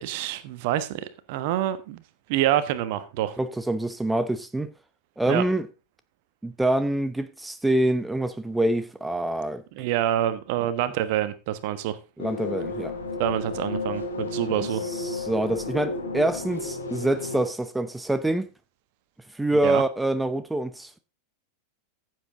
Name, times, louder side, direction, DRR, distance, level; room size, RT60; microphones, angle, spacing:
voice 1, 0.0-2.0 2.3-3.4 5.3-5.4 9.8-12.0 13.2-14.8 19.6-19.8, right 12 dB, 50° right, 1.3 m, -26 dB
voice 2, 3.4-4.7 5.2-5.7 6.4-9.6 12.2-12.9 14.8-18.5 19.3-21.0, right 1 dB, 5° right, 0.8 m, -26 dB
sound 1, 12.2-17.5, left 2 dB, 70° left, 3.2 m, -32 dB
15.0 x 7.8 x 3.8 m
figure-of-eight pair, 90°, 0 cm